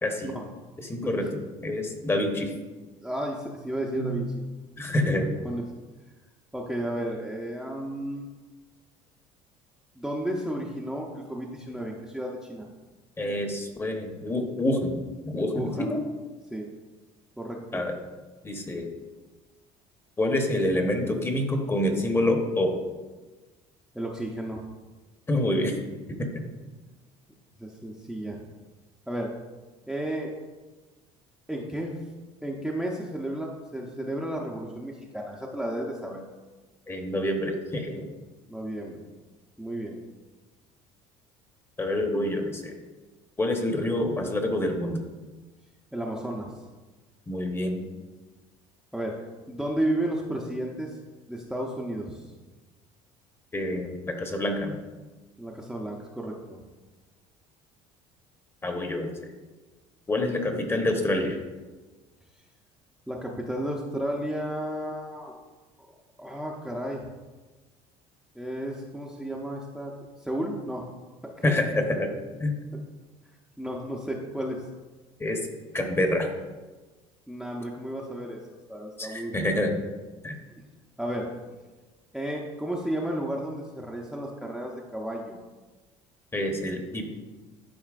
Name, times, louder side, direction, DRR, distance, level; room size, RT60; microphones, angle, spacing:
voice 1, 0.8-1.3 1.6-2.5 3.9-4.2 4.8-5.3 13.2-16.0 17.7-17.9 18.4-18.9 20.2-22.8 25.3-25.8 26.3-26.4 36.9-38.0 41.8-42.7 43.4-45.0 47.3-47.9 53.5-54.7 58.6-59.3 60.1-61.4 71.4-72.1 72.4-72.6 75.2-75.4 75.7-76.3 79.0-79.7 80.2-80.3 86.3-87.1, left 1 dB, 20° left, 3 dB, 1.0 m, -27 dB
voice 2, 3.0-4.3 5.4-5.6 6.5-8.3 10.0-12.7 15.5-16.0 16.5-16.7 17.4-17.8 23.9-24.7 27.6-28.4 29.1-29.3 29.9-30.3 31.5-32.0 32.4-36.2 38.5-39.0 39.6-40.0 45.9-46.5 48.9-49.1 49.5-51.0 51.3-52.3 55.4-56.6 63.1-65.3 66.2-67.1 68.3-69.9 70.2-70.9 71.2-71.6 73.6-74.6 77.3-78.4 78.7-79.3 81.0-81.3 82.1-85.4, right 1 dB, ahead, -2 dB, 0.6 m, -33 dB
10.5 x 4.3 x 2.5 m, 1.3 s
supercardioid pair, 105°, 13 cm